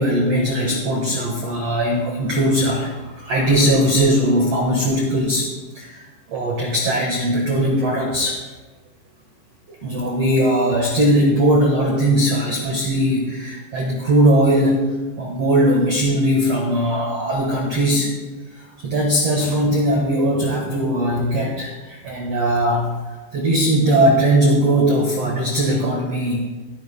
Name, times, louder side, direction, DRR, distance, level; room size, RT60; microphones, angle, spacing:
voice 1, 0.0-5.5 5.7-8.4 9.7-18.1 18.6-22.9 23.3-26.4, right 1 dB, 90° right, -1 dB, 1.4 m, -19 dB
21.0 x 10.5 x 2.2 m, 1.3 s
omnidirectional pair, 5.3 m